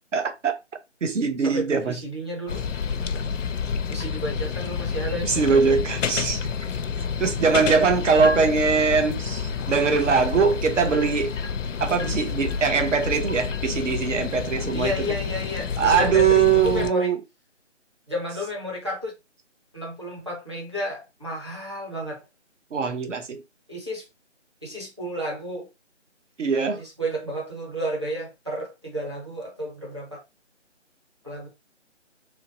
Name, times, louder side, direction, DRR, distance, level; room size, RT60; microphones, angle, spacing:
voice 1, 0.1-0.5 1.0-2.0 5.2-6.4 7.2-11.3 11.8-15.1 15.8-17.2 22.7-23.4 26.4-26.8, right 5 dB, 75° right, 0.8 m, -22 dB
voice 2, 1.4-2.6 3.9-5.4 14.7-17.1 18.1-19.1 19.7-22.2 23.7-24.0 24.6-25.7 26.7-30.2 31.2-31.5, equal, 25° right, 0.7 m, -32 dB
sound 1, 2.5-16.9, left 6 dB, 80° left, 0.5 m, -29 dB
3.1 x 2.2 x 2.6 m
figure-of-eight pair, 175°, 37 cm